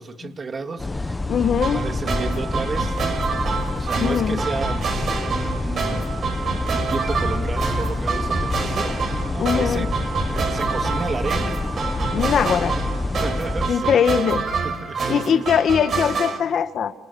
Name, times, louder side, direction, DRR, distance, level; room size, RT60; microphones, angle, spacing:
voice 1, 0.0-3.0 3.4-6.2 6.7-11.6 12.1-12.6 13.2-14.0 14.6-15.4, right 4 dB, 35° right, 6 dB, 2.5 m, -32 dB
sound 1, 0.8-13.7, left 2 dB, 20° left, 1.3 m, -27 dB
voice 2, 1.3-1.8 4.0-4.4 9.4-9.9 12.1-12.7 13.7-14.4 15.1-16.9, left 7 dB, 60° left, 9 dB, 1.7 m, -21 dB
sound 2, 1.6-16.4, right 5 dB, 55° right, 5.6 m, -27 dB
28.0 x 27.5 x 7.2 m, 0.92 s
cardioid pair, 90°, 0 cm